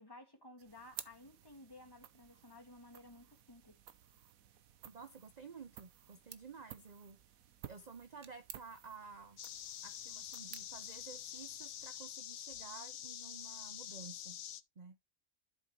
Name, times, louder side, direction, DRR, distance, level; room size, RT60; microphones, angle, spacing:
voice 1, 0.0-3.8, left 2 dB, 15° left, 1.8 m, -56 dB
sound 1, 0.6-12.3, right 9 dB, 70° right, 1.3 m, -55 dB
voice 2, 4.9-7.4 7.7-9.4 9.8-14.4 14.8-15.0, right 5 dB, 40° right, 0.7 m, -53 dB
sound 2, 9.4-14.6, left 11 dB, 70° left, 1.1 m, -47 dB
12.0 x 6.2 x 2.9 m
omnidirectional pair, 1.5 m